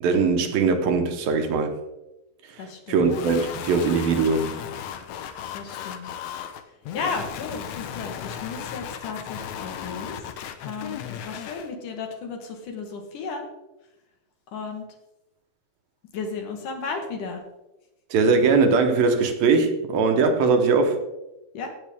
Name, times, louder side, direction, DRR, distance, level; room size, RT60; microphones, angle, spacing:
voice 1, 0.0-1.7 2.9-4.6 18.1-21.0, right 4 dB, 75° right, 2.8 m, -21 dB
voice 2, 2.6-3.1 5.5-6.1 6.9-10.3 10.6-13.5 14.5-14.9 16.1-17.4 21.5-21.7, left 4 dB, 65° left, 2.8 m, -34 dB
sound 1, 3.0-11.7, left 9 dB, 80° left, 1.6 m, -36 dB
17.0 x 8.1 x 3.5 m
omnidirectional pair, 4.3 m